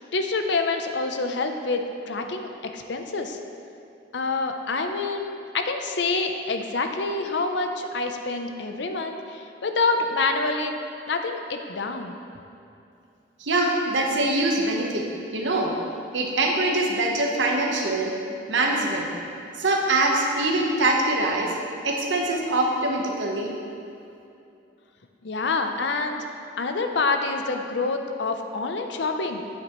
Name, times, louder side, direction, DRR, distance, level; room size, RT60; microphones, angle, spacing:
voice 1, 0.1-3.4 4.1-10.8 11.1-12.1 25.2-26.3 26.6-29.4, left 3 dB, 75° left, 5 dB, 0.6 m, -27 dB
voice 2, 13.4-15.0 15.3-15.7 16.1-18.1 18.5-19.1 19.6-21.5 21.8-23.5, right 2 dB, 80° right, 0 dB, 1.0 m, -23 dB
8.9 x 8.4 x 3.0 m, 2.6 s
head